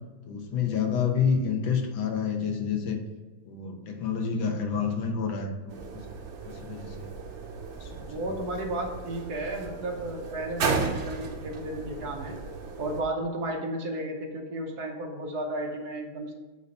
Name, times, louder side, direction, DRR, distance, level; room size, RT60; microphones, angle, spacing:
voice 1, 0.3-3.0 3.4-6.1 6.4-7.1 7.8-8.3, left 6 dB, 75° left, 3 dB, 1.6 m, -29 dB
sound 1, 5.7-13.0, right 4 dB, 85° right, 0.6 m, -35 dB
voice 2, 7.9-12.4 12.8-16.3, right 1 dB, 60° right, 2 dB, 1.2 m, -33 dB
8.3 x 2.8 x 5.1 m, 1.2 s
omnidirectional pair, 2.2 m